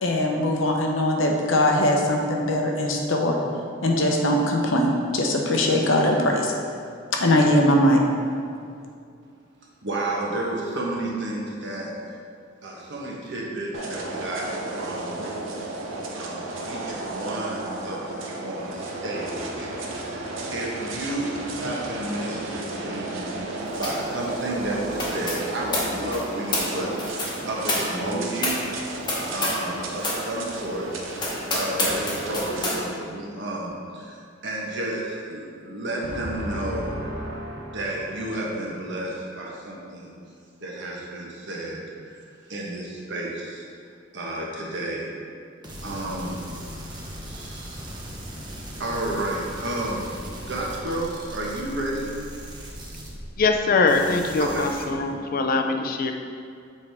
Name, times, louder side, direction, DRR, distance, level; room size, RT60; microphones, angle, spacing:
voice 1, 0.0-3.4 3.8-6.6 7.1-8.0, left 1 dB, 80° left, 1 dB, 0.8 m, -21 dB
voice 2, 9.8-11.9 12.6-15.3 16.2-28.7 29.3-30.9 31.5-40.1 40.6-42.2 42.5-43.6 44.1-45.1 45.8-46.5 47.2-47.8 48.8-50.1 50.4-52.1 54.4-54.7, right 1 dB, 65° right, -3 dB, 1.2 m, -31 dB
sound 1, 13.7-32.7, right 2 dB, 90° right, 0.8 m, -33 dB
sound 2, 23.8-24.1 24.4-29.7 30.0-30.3 30.7-30.8 31.2-32.8, left 2 dB, 25° left, 1.0 m, -29 dB
sound 3, 45.6-53.6 53.9-54.8, equal, 25° right, 0.8 m, -38 dB
voice 3, 53.4-56.1, left 3 dB, 50° left, 5 dB, 0.4 m, -22 dB
7.1 x 4.6 x 3.5 m, 2.3 s
head